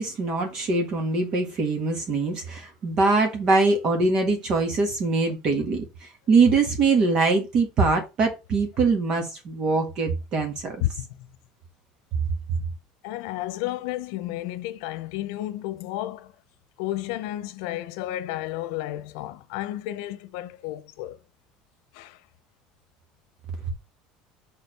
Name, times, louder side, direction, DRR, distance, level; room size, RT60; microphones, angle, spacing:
voice 1, 0.0-10.8, right 3 dB, 35° right, 1.5 m, -23 dB
voice 2, 10.8-11.3 13.0-16.3 16.8-21.2 21.9-22.2, left 14 dB, 80° left, 0.8 m, -32 dB
6.6 x 3.6 x 5.9 m
cardioid pair, 165°, 2 cm